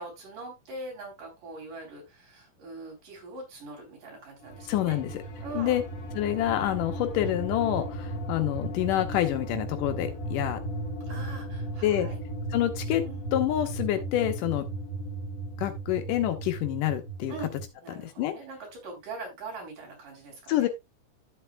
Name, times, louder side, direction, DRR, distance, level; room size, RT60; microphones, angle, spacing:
voice 1, 0.0-5.0 5.4-5.8 11.1-12.2 13.1-13.2 17.3-17.5 17.8-20.7, right 2 dB, 70° right, 5.2 m, -42 dB
sound 1, 4.4-17.7, right 1 dB, 40° left, 1.2 m, -36 dB
voice 2, 4.7-5.1 5.5-5.8 6.1-10.6 11.8-12.1 12.5-13.0 13.3-14.7 15.6-17.3 18.0-18.3 20.5-20.7, left 13 dB, 80° left, 2.5 m, -27 dB
12.5 x 7.8 x 2.2 m
omnidirectional pair, 3.8 m